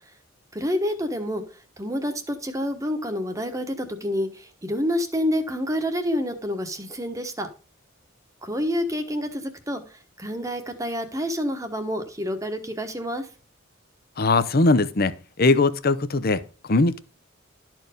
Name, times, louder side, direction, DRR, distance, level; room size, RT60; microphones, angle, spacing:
voice 1, 0.5-1.4 1.8-7.5 8.4-13.3, equal, 15° right, 1.3 m, -28 dB
voice 2, 14.2-17.0, left 3 dB, 45° left, 0.7 m, -21 dB
12.5 x 4.7 x 5.1 m
head